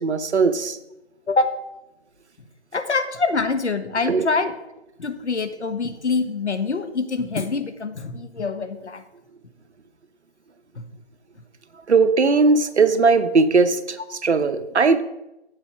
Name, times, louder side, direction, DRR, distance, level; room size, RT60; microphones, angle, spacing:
voice 1, 0.0-0.8 4.1-4.3 11.9-15.0, right 4 dB, 75° right, 11 dB, 0.9 m, -18 dB
voice 2, 2.7-4.5 5.0-9.0 10.8-10.9, left 4 dB, 80° left, 10 dB, 1.2 m, -25 dB
7.9 x 7.7 x 4.8 m, 0.92 s
figure-of-eight pair, 160°, 34 cm